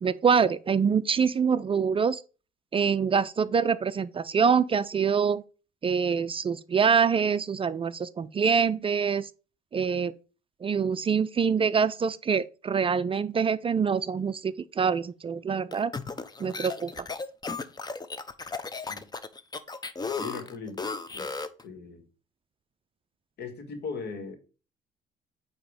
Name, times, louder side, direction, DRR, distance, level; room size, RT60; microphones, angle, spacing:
voice 1, 0.0-2.2 2.7-5.4 5.8-9.3 9.7-10.1 10.6-15.9 16.4-17.1, right 6 dB, 30° right, 0.4 m, -25 dB
sound 1, 15.7-21.6, left 4 dB, 20° left, 0.7 m, -35 dB
voice 2, 20.2-20.8 21.1-22.0 23.4-24.4, left 4 dB, 65° left, 1.8 m, -39 dB
8.7 x 2.9 x 4.9 m
supercardioid pair, 80°, 18 cm